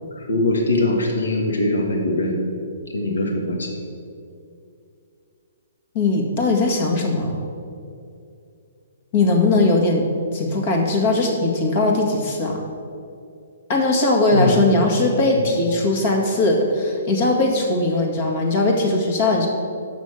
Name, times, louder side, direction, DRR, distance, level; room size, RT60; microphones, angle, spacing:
voice 1, 0.1-2.4 2.9-3.7 14.3-14.6, left 2 dB, 80° left, 1 dB, 1.5 m, -21 dB
voice 2, 5.9-7.4 9.1-10.1 10.3-12.6 13.7-19.5, left 2 dB, 45° left, 1 dB, 1.8 m, -19 dB
6.3 x 6.2 x 7.4 m, 2.5 s
hypercardioid pair, 135°, 0 cm